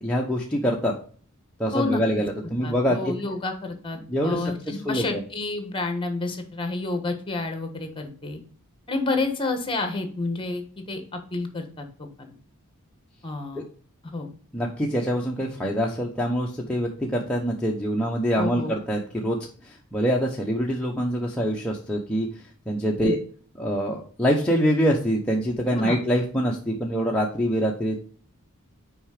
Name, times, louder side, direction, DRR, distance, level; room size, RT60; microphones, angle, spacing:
voice 1, 0.0-0.9 1.6-3.1 4.1-5.2 13.6-13.7 14.5-22.3 22.7-23.2 23.6-28.0, equal, 5° left, -3 dB, 0.8 m, -25 dB
voice 2, 2.6-8.4 8.9-11.8 13.2-13.6 14.0-14.3 18.3-18.8 23.0-23.2 25.8-26.0, left 3 dB, 25° left, 6 dB, 1.3 m, -29 dB
6.1 x 4.8 x 5.0 m, 0.44 s
head